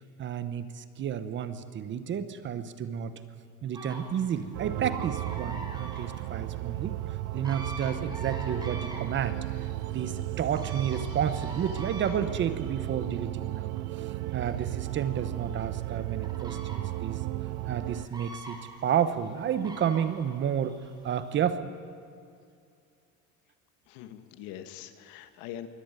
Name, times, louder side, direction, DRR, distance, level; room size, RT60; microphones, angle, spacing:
voice 1, 0.2-3.1 3.6-7.0 7.3-14.1 14.3-17.2 17.7-20.8 21.0-21.7, right 8 dB, 35° right, 12 dB, 1.1 m, -31 dB
sound 1, 3.7-21.4, right 2 dB, 10° right, 2.9 m, -46 dB
sound 2, 4.5-18.1, right 17 dB, 90° right, 0.7 m, -34 dB
voice 2, 23.9-25.7, left 11 dB, 75° left, 10 dB, 1.8 m, -43 dB
23.0 x 17.5 x 9.1 m, 2.4 s
cardioid pair, 165°, 35 cm